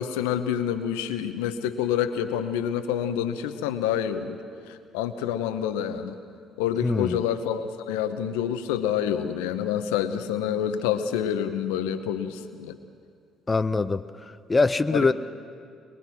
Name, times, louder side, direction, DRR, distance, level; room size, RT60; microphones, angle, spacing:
voice 1, 0.0-4.4 4.9-6.2 6.6-12.8 14.9-15.1, left 9 dB, 80° left, 10 dB, 0.9 m, -27 dB
voice 2, 6.8-7.2 13.5-14.0 14.5-15.1, left 3 dB, 25° left, 12 dB, 0.6 m, -22 dB
22.5 x 22.0 x 6.1 m, 2.2 s
hypercardioid pair, 55°, 0 cm